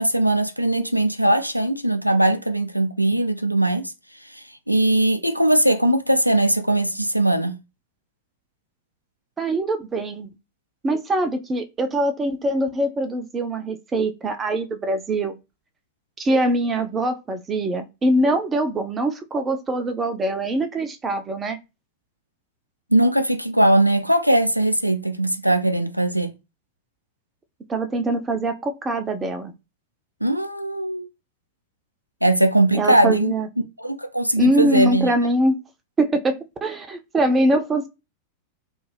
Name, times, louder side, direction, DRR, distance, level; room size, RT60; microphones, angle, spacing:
voice 1, 0.0-3.9 4.2-7.6 22.9-26.3 30.2-31.1 32.2-33.3 33.8-35.1, right 1 dB, 90° right, 0.4 m, -20 dB
voice 2, 9.4-10.3 10.8-15.4 16.2-21.6 27.7-29.5 32.7-33.5 34.4-35.6 36.0-37.9, right 1 dB, 20° right, 0.5 m, -23 dB
2.4 x 2.3 x 3.2 m
figure-of-eight pair, 90°, 0 cm